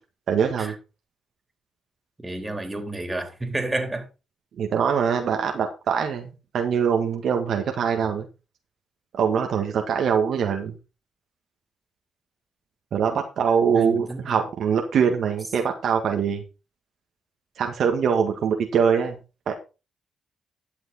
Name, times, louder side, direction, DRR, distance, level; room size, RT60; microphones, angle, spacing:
voice 1, 0.3-0.7 4.6-8.3 9.1-10.7 12.9-16.4 17.6-19.2 19.5-19.6, right 7 dB, 65° right, 1.8 m, -23 dB
voice 2, 2.2-4.1 13.7-14.4, right 2 dB, 20° right, 3.6 m, -30 dB
12.0 x 7.2 x 4.2 m
supercardioid pair, 50°, 0 cm